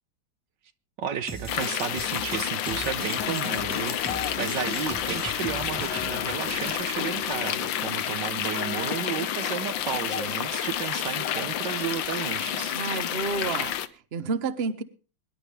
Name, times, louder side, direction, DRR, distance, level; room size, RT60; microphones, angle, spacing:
voice 1, 1.0-12.8, right 9 dB, 70° right, 1.4 m, -33 dB
sound 1, 1.3-6.8, right 2 dB, 10° right, 1.2 m, -39 dB
sound 2, 1.5-13.9, left 10 dB, 75° left, 1.6 m, -29 dB
voice 2, 12.7-14.8, right 4 dB, 40° right, 1.0 m, -30 dB
23.5 x 11.0 x 3.4 m
omnidirectional pair, 2.1 m